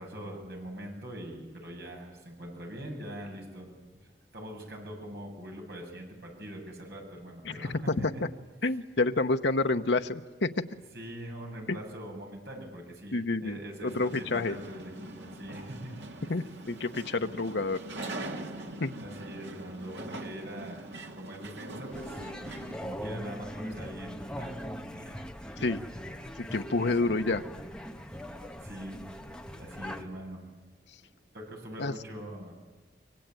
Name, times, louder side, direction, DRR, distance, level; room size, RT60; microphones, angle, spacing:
voice 1, 0.0-8.2 8.6-8.8 10.9-16.0 16.2-16.4 19.0-22.2 22.8-25.2 28.6-29.0 29.6-30.5 31.3-32.5, equal, 65° right, 1 dB, 7.4 m, -43 dB
voice 2, 7.4-8.1 8.6-10.5 11.7-11.8 13.1-14.6 16.3-18.1 18.8-18.9 25.6-25.8 26.5-27.4 31.8-31.9, left 3 dB, 85° left, 6 dB, 1.0 m, -29 dB
sound 1, 13.9-22.7, right 2 dB, 85° right, 2.5 m, -42 dB
sound 2, 21.9-30.0, equal, 5° left, 1.4 m, -41 dB
25.5 x 24.5 x 9.1 m, 1.3 s
head